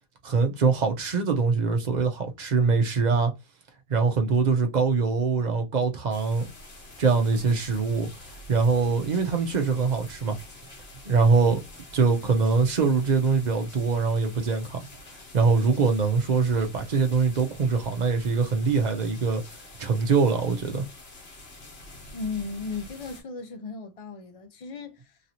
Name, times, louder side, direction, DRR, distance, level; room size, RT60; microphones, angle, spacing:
voice 1, 0.2-3.3 3.9-6.5 7.0-8.1 8.5-10.4 11.1-11.6 11.9-14.8 15.3-19.4 19.8-20.8, right 4 dB, 50° right, 0.7 m, -23 dB
sound 1, 6.1-23.2, left 1 dB, 80° left, 1.4 m, -47 dB
voice 2, 22.1-25.2, left 4 dB, 40° left, 0.6 m, -36 dB
3.0 x 2.6 x 2.8 m
omnidirectional pair, 1.0 m